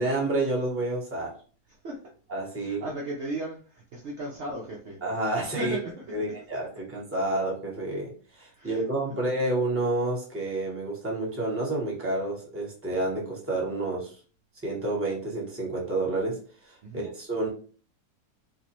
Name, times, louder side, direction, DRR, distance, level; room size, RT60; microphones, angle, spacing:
voice 1, 0.0-1.3 2.3-2.9 5.0-5.8 6.1-6.7 6.9-14.1 14.6-16.4 16.6-17.5, right 2 dB, 10° right, -3 dB, 0.9 m, -29 dB
voice 2, 1.7-2.0 2.5-5.0 5.4-6.2 6.6-6.7 8.5-8.8 16.8-17.1, right 1 dB, 55° right, -2 dB, 0.8 m, -36 dB
5.0 x 2.1 x 3.0 m, 0.41 s
omnidirectional pair, 1.7 m